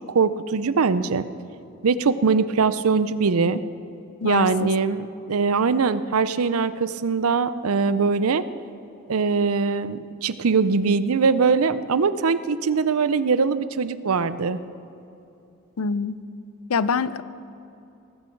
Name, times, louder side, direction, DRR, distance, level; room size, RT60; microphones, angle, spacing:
voice 1, 0.1-1.2 1.8-3.6 4.2-8.4 9.1-14.6, right 5 dB, 85° right, 14 dB, 0.6 m, -22 dB
voice 2, 4.2-4.7 15.8-16.2 16.7-17.2, left 5 dB, 85° left, 16 dB, 0.5 m, -25 dB
19.0 x 15.0 x 4.6 m, 2.8 s
head